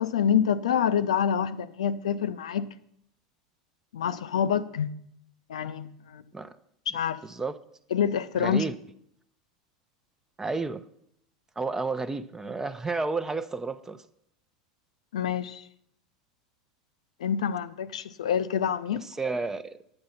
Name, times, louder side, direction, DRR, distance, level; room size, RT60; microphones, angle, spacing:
voice 1, 0.0-2.7 3.9-5.0 5.5-6.2 6.9-7.2 7.9-8.6 15.1-15.7 17.2-19.0, left 8 dB, 75° left, 0.5 m, -27 dB
voice 2, 7.2-7.6 8.3-8.7 10.4-10.8 11.6-14.0 19.0-19.7, right 3 dB, 15° right, 0.6 m, -31 dB
9.4 x 8.8 x 5.6 m
hypercardioid pair, 85°, 3 cm